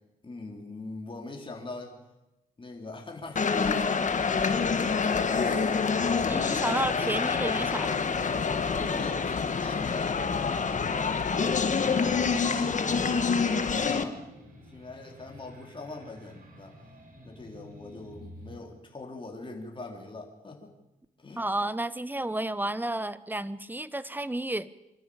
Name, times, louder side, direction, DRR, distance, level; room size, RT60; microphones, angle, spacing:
voice 1, 0.2-2.0 2.6-7.3 8.8-10.8 11.8-14.2 14.7-16.8 17.2-20.7 21.2-21.4, left 2 dB, 30° left, 1 dB, 3.9 m, -41 dB
sound 1, 3.4-14.0, left 5 dB, 50° left, 1.7 m, -27 dB
sound 2, 4.4-18.6, equal, 60° right, 5.5 m, -49 dB
voice 2, 6.3-8.0 21.4-24.7, right 1 dB, 10° right, 16 dB, 1.1 m, -31 dB
25.5 x 12.5 x 8.8 m, 0.97 s
cardioid pair, 75°, 16 cm